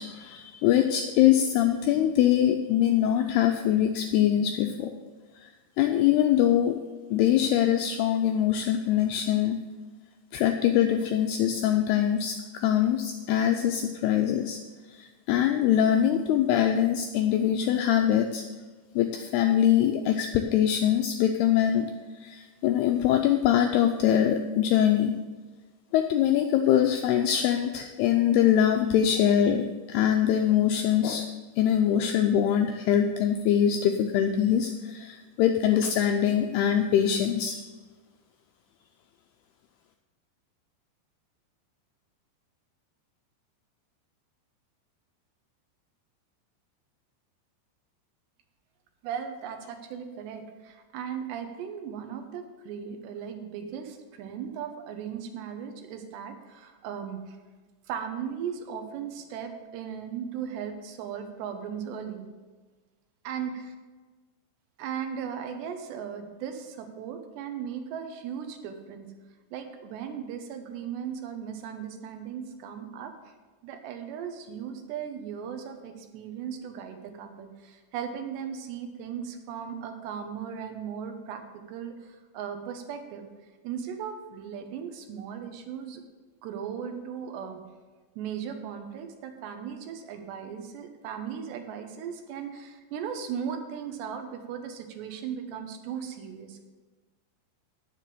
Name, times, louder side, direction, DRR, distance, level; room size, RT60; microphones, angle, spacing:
voice 1, 0.0-4.9 5.4-5.5 5.8-6.8 7.1-9.6 10.3-12.4 12.6-14.6 14.9-18.4 19.0-21.9 22.2-25.2 25.9-31.3 31.6-37.6, left 10 dB, 85° left, 4 dB, 2.3 m, -23 dB
voice 2, 49.0-57.4 57.9-62.3 63.2-63.7 64.8-69.1 69.5-73.3 73.6-83.3 83.6-86.0 86.4-87.6 88.2-96.7, right 8 dB, 75° right, 6 dB, 3.0 m, -37 dB
9.2 x 7.5 x 6.8 m, 1.3 s
omnidirectional pair, 5.2 m